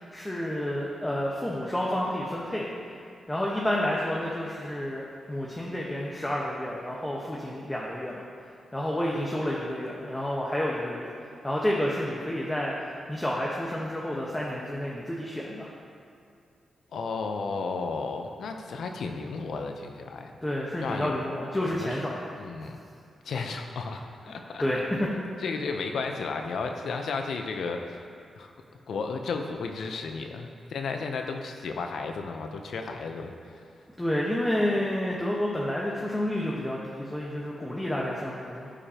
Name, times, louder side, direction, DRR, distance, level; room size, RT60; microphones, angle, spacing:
voice 1, 0.1-2.7 3.3-8.2 8.7-11.1 11.4-12.7 13.1-15.7 20.4-22.2 24.6-24.8 34.0-38.7, left 1 dB, 15° left, -5 dB, 1.2 m, -30 dB
voice 2, 16.9-20.3 20.8-21.2 21.5-22.8 23.2-24.6 25.4-28.0 28.4-28.5 28.9-33.6, left 4 dB, 75° left, 4 dB, 0.7 m, -33 dB
15.0 x 4.9 x 2.9 m, 2.5 s
cardioid pair, 60°, 0 cm